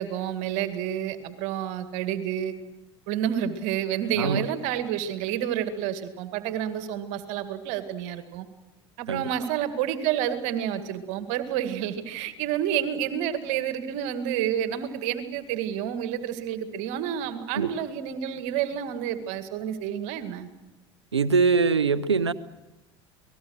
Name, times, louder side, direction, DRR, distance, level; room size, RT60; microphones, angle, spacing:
voice 1, 0.0-2.6 3.1-8.5 9.0-20.5, right 10 dB, 55° right, 9 dB, 2.1 m, -29 dB
voice 2, 21.1-22.3, right 5 dB, 90° right, 17 dB, 0.8 m, -22 dB
29.5 x 19.5 x 6.4 m, 0.99 s
figure-of-eight pair, 70°, 14 cm